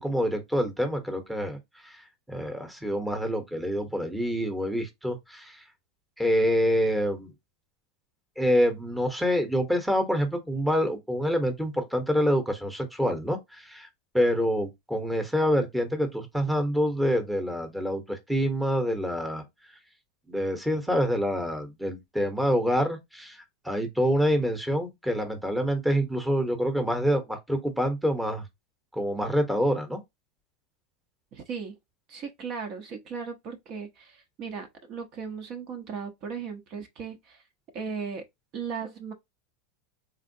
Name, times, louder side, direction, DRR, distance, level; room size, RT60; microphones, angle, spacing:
voice 1, 0.0-5.7 6.2-7.3 8.4-13.9 14.1-19.8 20.3-28.5 28.9-30.0, equal, 5° right, 1.0 m, -26 dB
voice 2, 31.3-31.8 32.1-37.4 37.7-38.2 38.5-39.1, right 6 dB, 50° right, 0.9 m, -37 dB
3.6 x 2.4 x 2.7 m
hypercardioid pair, 110°, 0 cm